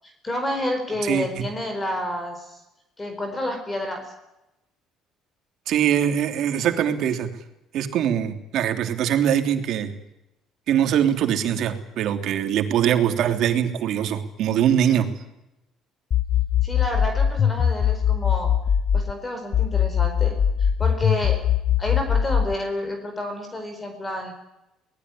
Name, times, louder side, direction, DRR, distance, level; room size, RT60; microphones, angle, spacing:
voice 1, 0.0-2.6 3.0-4.1 16.6-18.6 18.9-21.4 21.8-24.3, left 1 dB, 15° left, 6 dB, 4.5 m, -30 dB
voice 2, 1.0-1.4 5.7-7.3 7.7-9.9 10.7-15.1, right 9 dB, 60° right, 6 dB, 3.2 m, -22 dB
sound 1, 16.1-19.1 19.5-22.5, left 8 dB, 35° left, 1.0 m, -21 dB
24.0 x 19.5 x 9.9 m, 0.91 s
cardioid pair, 140°, 0 cm